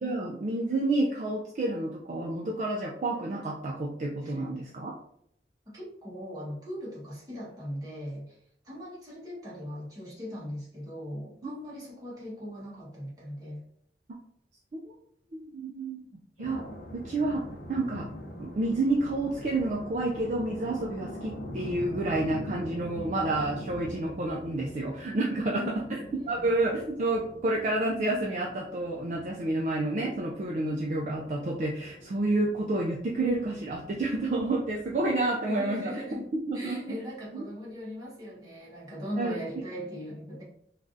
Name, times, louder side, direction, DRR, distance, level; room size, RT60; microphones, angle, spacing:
voice 1, 0.0-4.9 14.7-14.9 15.3-16.1 16.4-16.7 16.9-17.4 17.7-18.1 18.4-26.0 26.3-36.0 36.5-36.9 37.3-37.5 39.2-39.4, right 2 dB, 45° right, -2 dB, 0.3 m, -29 dB
voice 2, 5.7-8.4 8.6-13.6 25.5-26.5 35.4-40.4, equal, 20° right, -7 dB, 1.1 m, -39 dB
sound 1, 16.4-35.2, equal, 50° left, 0.6 m, -44 dB
3.3 x 2.4 x 2.5 m, 0.71 s
head